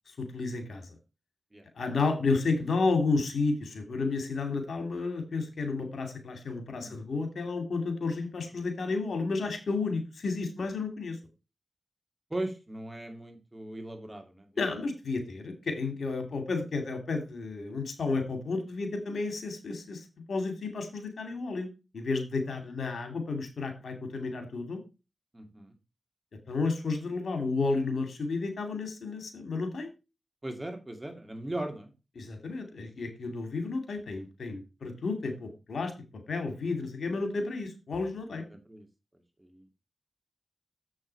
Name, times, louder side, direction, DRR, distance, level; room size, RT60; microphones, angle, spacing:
voice 1, 0.2-0.9 1.8-11.2 14.6-21.7 21.9-24.8 26.5-29.9 32.2-35.9 36.3-38.5, left 3 dB, 80° left, 6 dB, 2.3 m, -32 dB
voice 2, 12.3-14.5 22.5-22.6 25.3-25.7 30.4-31.9 38.3-38.9 39.4-39.7, right 1 dB, 20° right, 6 dB, 2.4 m, -38 dB
7.6 x 6.4 x 4.6 m, 0.28 s
cardioid pair, 55°, 0 cm